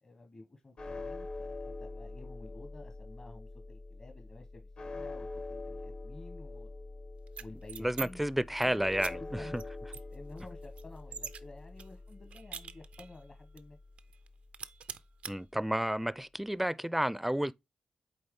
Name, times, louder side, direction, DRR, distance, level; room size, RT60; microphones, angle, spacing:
voice 1, 0.0-6.7 7.4-8.8 9.1-9.5 10.1-13.8, left 2 dB, 45° left, 1.1 m, -52 dB
sound 1, 0.8-15.0, left 3 dB, 70° left, 1.7 m, -45 dB
sound 2, 7.3-8.1 8.4-8.7 9.0-9.1 9.6-9.7 9.9-11.4 11.8-13.2 13.6-13.7 14.0-14.3 14.5-15.3, right 7 dB, 85° right, 0.4 m, -43 dB
voice 2, 7.8-9.6 15.3-17.5, right 1 dB, 5° right, 0.4 m, -31 dB
8.7 x 3.2 x 3.7 m
cardioid pair, 55°, 2 cm